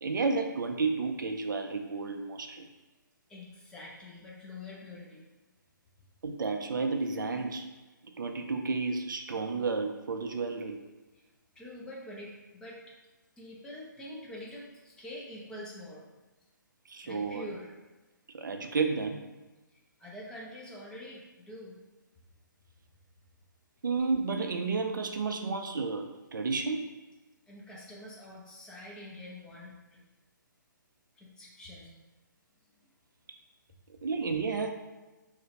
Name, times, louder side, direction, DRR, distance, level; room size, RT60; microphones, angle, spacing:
voice 1, 0.0-2.6 6.2-7.7 8.2-10.8 16.9-17.5 18.3-19.3 23.8-26.9 34.0-34.7, right 4 dB, 70° right, 5 dB, 0.4 m, -31 dB
voice 2, 3.3-5.2 11.6-12.8 13.4-16.1 17.0-17.7 20.0-21.8 27.5-30.0 31.2-31.9, left 1 dB, 5° left, -4 dB, 0.4 m, -45 dB
2.5 x 2.1 x 3.8 m, 1.1 s
figure-of-eight pair, 140°, 11 cm